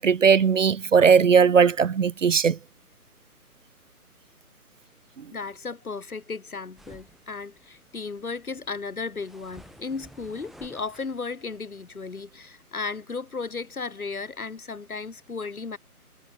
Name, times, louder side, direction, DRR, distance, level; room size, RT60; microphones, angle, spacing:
voice 1, 0.0-2.6, right 6 dB, 55° right, 0.6 m, -18 dB
voice 2, 5.3-15.8, left 4 dB, 65° left, 3.6 m, -35 dB
sound 1, 6.8-12.5, right 1 dB, ahead, 2.4 m, -54 dB
figure-of-eight pair, 145°, 46 cm